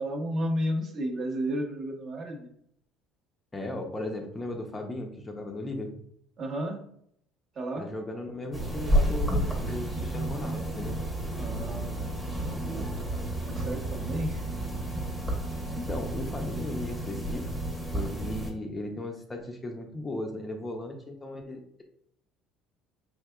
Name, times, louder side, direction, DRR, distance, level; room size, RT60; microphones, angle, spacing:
voice 1, 0.0-2.5 6.4-6.8 7.6-7.8 11.4-12.9 13.4-14.4, equal, 35° right, 3 dB, 0.7 m, -33 dB
voice 2, 3.5-5.9 7.8-11.0 15.8-17.5 17.9-21.8, left 1 dB, 15° left, 3 dB, 0.5 m, -36 dB
sound 1, 8.5-18.5, right 1 dB, ahead, 0.8 m, -31 dB
4.7 x 3.5 x 2.2 m, 0.69 s
cardioid pair, 160°, 0 cm